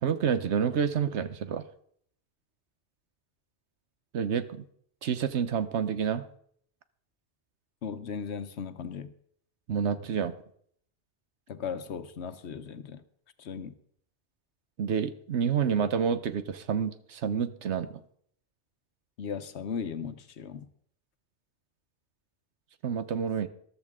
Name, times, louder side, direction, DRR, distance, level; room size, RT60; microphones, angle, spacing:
voice 1, 0.0-1.6 4.1-4.6 5.0-6.3 9.7-10.3 14.8-18.0 22.8-23.5, right 7 dB, 85° right, 1.2 m, -28 dB
voice 2, 7.8-9.1 11.5-13.0 13.4-13.7 19.2-20.7, left 6 dB, 75° left, 1.1 m, -37 dB
14.0 x 13.0 x 3.6 m
omnidirectional pair, 1.1 m